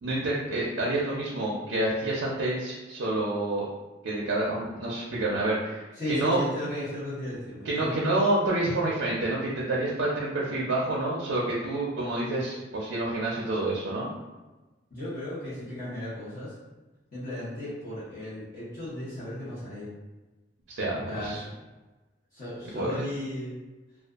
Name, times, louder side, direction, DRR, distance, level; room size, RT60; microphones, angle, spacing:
voice 1, 0.0-3.7 4.0-6.4 7.6-14.1 20.7-21.4 22.7-23.0, right 2 dB, 80° right, -4 dB, 0.5 m, -28 dB
voice 2, 6.0-8.1 14.9-16.5 17.1-19.9 21.1-21.4 22.3-23.5, left 1 dB, 45° left, -11 dB, 1.0 m, -35 dB
2.4 x 2.3 x 2.3 m, 1.1 s
head